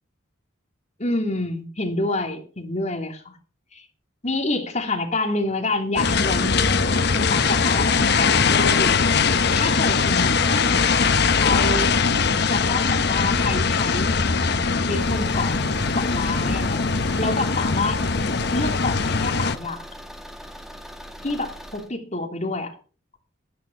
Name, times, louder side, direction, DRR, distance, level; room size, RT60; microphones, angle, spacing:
voice 1, 1.0-3.4 3.7-3.8 4.2-6.6 7.1-9.1 9.5-10.9 11.3-11.9 12.5-14.1 14.8-15.6 15.9-16.8 17.2-18.0 18.5-19.8 21.2-22.7, left 2 dB, 35° left, 3 dB, 2.8 m, -27 dB
sound 1, 6.0-19.6, left 5 dB, 55° left, 0.9 m, -21 dB
Car / Engine, 14.8-21.9, equal, ahead, 1.3 m, -41 dB
11.5 x 10.5 x 6.0 m, 0.38 s
head